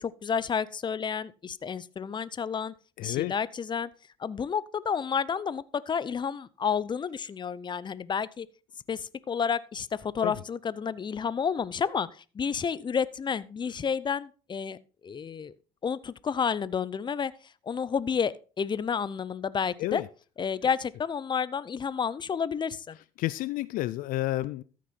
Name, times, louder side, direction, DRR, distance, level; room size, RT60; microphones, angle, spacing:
voice 1, 0.0-2.7 3.0-3.9 4.2-8.5 8.9-15.5 15.8-20.0 20.4-23.0, left 6 dB, 30° left, 0.7 m, -30 dB
voice 2, 3.0-3.3 10.2-10.3 19.8-20.0 23.2-24.6, left 17 dB, 65° left, 0.5 m, -30 dB
14.0 x 6.2 x 4.3 m
hypercardioid pair, 70°, 15 cm